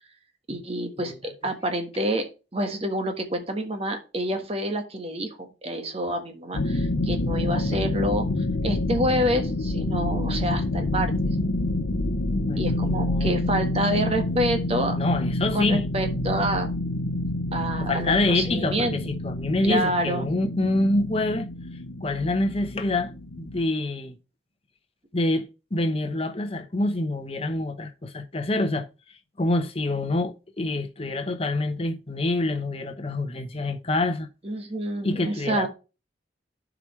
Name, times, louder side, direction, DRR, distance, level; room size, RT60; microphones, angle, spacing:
voice 1, 0.5-8.3 8.6-11.1 12.6-15.0 15.5-16.7 17.5-19.0 19.6-20.3 34.4-35.7, equal, 30° right, 1.4 m, -28 dB
sound 1, 6.5-23.6, left 1 dB, 75° left, 0.8 m, -28 dB
voice 2, 12.5-13.4 15.0-15.8 17.8-21.5 22.0-24.2 25.1-28.9 29.4-34.3 35.0-35.7, left 2 dB, 30° left, 1.0 m, -26 dB
11.5 x 5.1 x 3.2 m
head